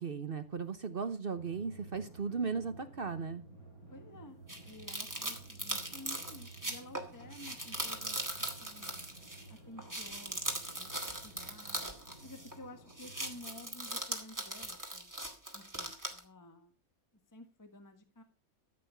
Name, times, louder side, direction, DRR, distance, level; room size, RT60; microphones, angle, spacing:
voice 1, 0.0-3.4, right 5 dB, 45° right, 11 dB, 1.0 m, -36 dB
Drum, 1.3-14.4, right 2 dB, 80° left, 5.9 m, -54 dB
voice 2, 3.9-4.4 4.6-8.2 8.6-9.0 9.5-11.9 12.2-15.1 15.5-16.7 17.3-18.2, left 1 dB, 15° left, 7 dB, 1.5 m, -53 dB
sound 1, 4.5-9.5 9.8-12.6 12.9-16.2, right 1 dB, 10° right, 2.2 m, -40 dB
14.0 x 8.4 x 5.6 m, 0.32 s
omnidirectional pair, 1.5 m